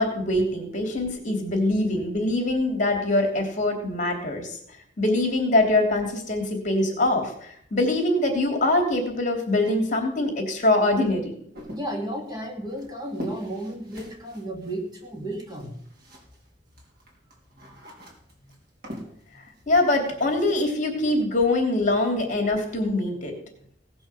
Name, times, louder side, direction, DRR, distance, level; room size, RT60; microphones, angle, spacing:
voice 1, 0.0-4.6 5.0-11.3 19.7-23.3, left 2 dB, 45° left, 3 dB, 3.0 m, -23 dB
sound 1, 11.5-16.5 16.7-20.7, equal, 55° right, 3.8 m, -43 dB
voice 2, 11.7-15.8, right 1 dB, 20° right, 1 dB, 2.5 m, -33 dB
17.5 x 6.2 x 6.9 m, 0.67 s
head